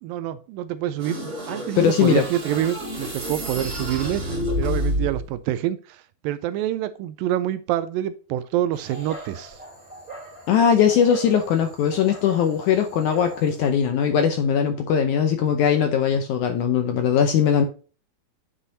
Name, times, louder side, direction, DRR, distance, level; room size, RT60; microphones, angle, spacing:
voice 1, 0.0-9.6 10.9-11.0, right 12 dB, 80° right, 2.1 m, -27 dB
sound 1, 1.0-5.3, equal, 25° right, 3.3 m, -29 dB
voice 2, 1.8-2.3 10.5-17.6, left 8 dB, 80° left, 1.8 m, -20 dB
Dog, 8.7-13.7, right 1 dB, 5° right, 2.9 m, -42 dB
9.8 x 5.6 x 2.7 m
omnidirectional pair, 4.3 m